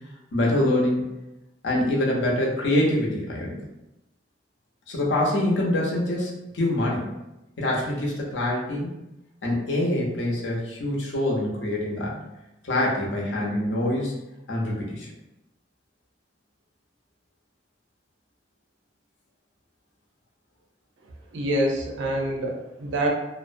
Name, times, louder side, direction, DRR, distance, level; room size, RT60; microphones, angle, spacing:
voice 1, 0.3-1.0 1.6-3.5 4.9-7.1 7.6-8.9 9.4-12.2 12.6-14.1 14.5-15.1, left 1 dB, 70° left, -3 dB, 0.7 m, -25 dB
voice 2, 21.3-23.1, right 1 dB, 85° right, 0 dB, 0.5 m, -26 dB
2.5 x 2.0 x 2.5 m, 0.93 s
head